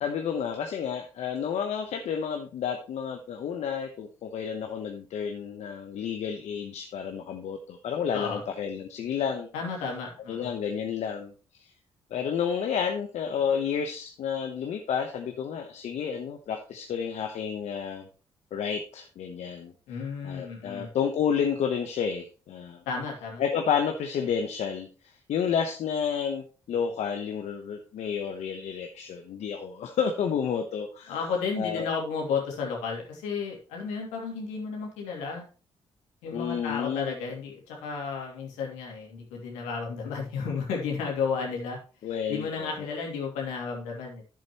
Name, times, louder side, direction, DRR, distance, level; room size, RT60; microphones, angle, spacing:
voice 1, 0.0-9.5 10.3-11.3 11.6-11.7 12.1-18.1 18.5-22.8 23.4-31.2 31.6-31.9 36.3-37.2 42.0-42.9, left 7 dB, 70° left, 4 dB, 1.0 m, -30 dB
voice 2, 9.5-10.5 19.9-20.9 22.9-23.4 31.1-35.4 36.2-41.8 42.3-44.2, left 5 dB, 85° left, -1 dB, 2.7 m, -33 dB
10.5 x 7.6 x 3.1 m, 0.35 s
supercardioid pair, 50°, 12 cm